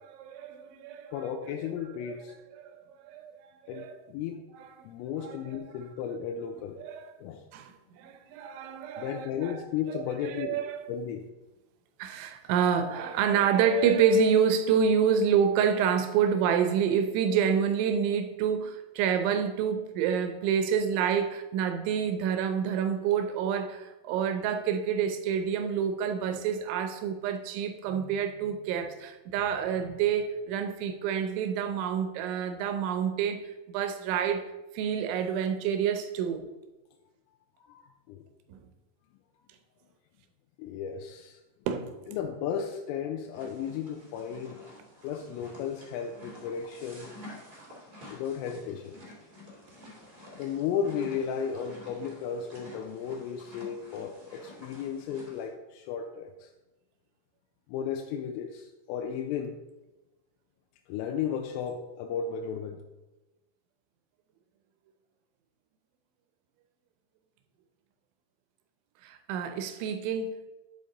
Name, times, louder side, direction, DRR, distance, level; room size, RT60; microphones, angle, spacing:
voice 1, 0.1-1.3 2.6-3.3 3.7-3.9 4.6-4.7 5.2-5.4 6.8-7.1 7.5-9.6 9.9-10.8 12.0-34.4 34.7-36.5 38.5-38.6 41.7-41.9 47.6-47.7 69.0-70.3, right 7 dB, 80° right, 7 dB, 3.0 m, -28 dB
voice 2, 1.1-2.3 3.7-4.4 4.8-6.8 7.2-7.4 9.0-10.6 10.9-11.3 37.6-38.2 40.6-41.4 42.1-44.6 45.0-47.1 48.1-49.0 50.4-56.5 57.7-59.6 60.9-62.8, left 7 dB, 85° left, 4 dB, 3.1 m, -34 dB
sound 1, 43.3-55.5, left 1 dB, 50° right, 1.1 m, -50 dB
12.5 x 5.1 x 3.9 m, 1.1 s
omnidirectional pair, 5.7 m